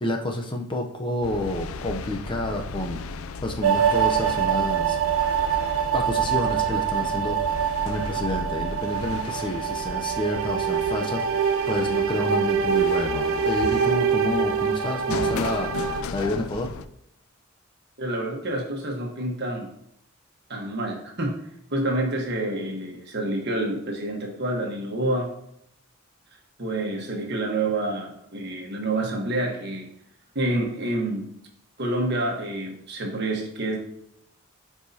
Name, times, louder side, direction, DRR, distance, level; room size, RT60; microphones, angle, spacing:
voice 1, 0.0-3.0 3.4-5.0 5.9-11.3 11.7-15.7 16.1-16.7, left 1 dB, 25° left, 0.7 m, -29 dB
sound 1, 1.2-16.8, left 4 dB, 85° left, 0.4 m, -36 dB
sound 2, 3.6-16.0, right 7 dB, 90° right, 0.7 m, -25 dB
voice 2, 18.0-19.7 20.5-25.4 26.6-29.9 30.3-31.3 31.8-33.8, right 1 dB, 55° right, 1.4 m, -28 dB
10.5 x 4.8 x 2.8 m
head